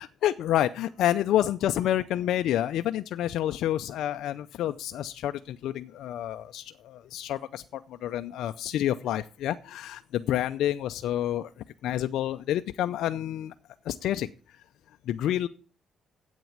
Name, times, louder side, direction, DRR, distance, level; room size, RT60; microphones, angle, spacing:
voice 1, 0.0-11.5 11.8-13.5 13.8-14.3 15.1-15.5, left 12 dB, 80° left, 9 dB, 0.5 m, -28 dB
9.1 x 8.2 x 7.1 m, 0.38 s
cardioid pair, 90°, 0 cm